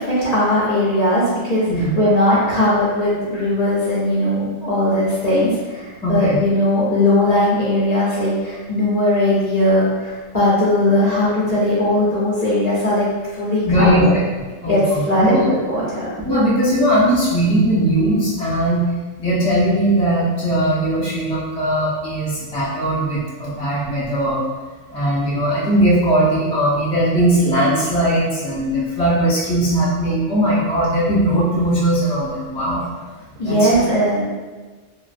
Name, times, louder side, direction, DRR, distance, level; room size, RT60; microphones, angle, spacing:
voice 1, 0.0-14.1 14.7-16.1 33.4-34.2, left 1 dB, 40° left, -8 dB, 0.7 m, -18 dB
voice 2, 6.0-6.4 13.7-14.1 14.6-15.5 16.2-18.9 19.2-24.4 24.9-33.1 33.4-33.7, right 1 dB, 10° left, -9 dB, 0.3 m, -19 dB
3.0 x 2.4 x 2.5 m, 1.3 s
omnidirectional pair, 1.3 m